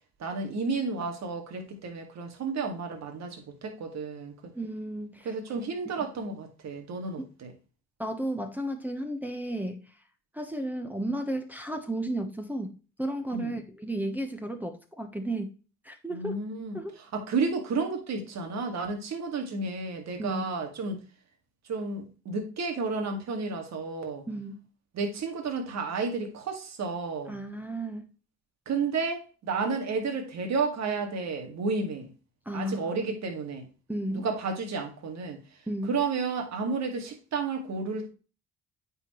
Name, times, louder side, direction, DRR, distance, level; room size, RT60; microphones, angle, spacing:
voice 1, 0.2-4.3 5.3-7.5 13.3-13.5 16.1-21.0 21.7-24.3 24.9-27.4 28.7-32.1 32.5-33.7 34.1-35.4 35.9-38.1, right 4 dB, 60° right, 2.0 m, -32 dB
voice 2, 4.5-5.3 6.0-6.1 7.2-7.3 8.0-9.9 10.3-15.5 15.8-16.4 16.7-16.9 20.2-20.4 24.3-24.6 27.3-28.1 32.5-33.1 33.9-34.3 35.7-36.0, right 1 dB, 5° right, 1.0 m, -33 dB
8.9 x 4.4 x 3.1 m
cardioid pair, 90°, 30 cm